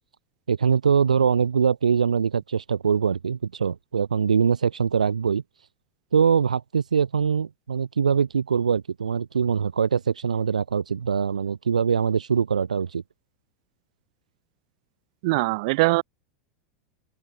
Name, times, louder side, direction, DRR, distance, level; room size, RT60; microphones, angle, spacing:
voice 1, 0.5-5.4 6.1-13.0, right 6 dB, 85° right, 0.3 m, -23 dB
voice 2, 15.2-16.0, right 24 dB, 60° right, 0.9 m, -21 dB
open air
hypercardioid pair, 90°, 4 cm